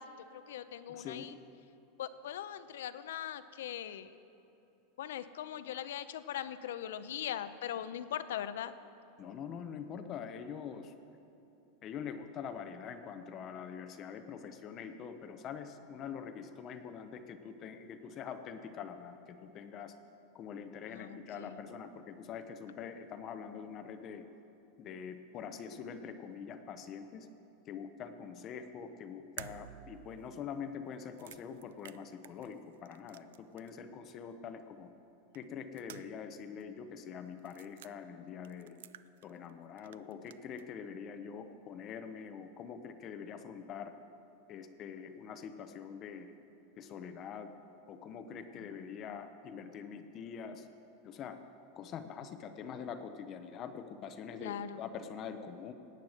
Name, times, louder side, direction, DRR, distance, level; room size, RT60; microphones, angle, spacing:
voice 1, 0.3-1.3 2.0-4.1 5.0-8.7 20.9-21.7 48.6-49.1 54.4-54.9, left 10 dB, 80° left, 13 dB, 0.7 m, -41 dB
voice 2, 0.9-1.3 9.2-10.9 11.8-19.9 20.3-24.2 24.8-27.3 27.7-34.9 35.3-38.8 39.2-43.9 44.5-46.3 46.8-47.5 47.9-50.7 51.0-51.4 51.7-55.7, left 7 dB, 25° left, 9 dB, 0.7 m, -44 dB
sound 1, 29.4-33.8 34.1-34.2 35.3-36.3 36.6-36.7 37.4-37.9 38.4-39.5 39.8-40.7, right 12 dB, 75° right, 0.4 m, -52 dB
18.0 x 9.3 x 6.4 m, 3.0 s
supercardioid pair, 175°, 0 cm